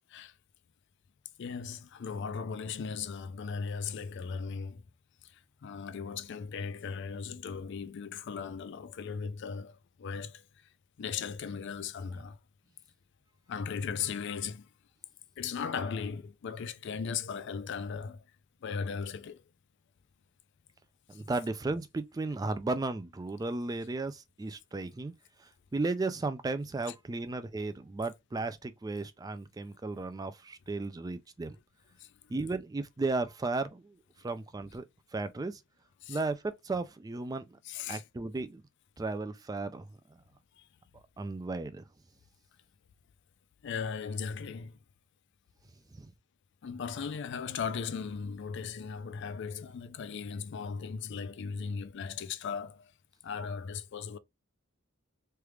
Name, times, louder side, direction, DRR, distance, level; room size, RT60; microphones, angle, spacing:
voice 1, 1.4-4.8 5.6-10.4 11.0-12.4 13.5-14.7 15.4-18.2 18.6-19.4 36.0-36.2 37.6-38.0 43.6-44.8 46.6-52.9 53.2-54.2, left 6 dB, 55° left, 0.4 m, -37 dB
voice 2, 21.1-25.1 25.4-31.6 32.3-34.0 34.2-34.9 35.1-35.6 36.1-37.6 37.9-38.6 39.0-39.9 40.9-41.8 45.9-46.1, right 3 dB, 20° right, 0.3 m, -35 dB
3.3 x 2.4 x 3.0 m
head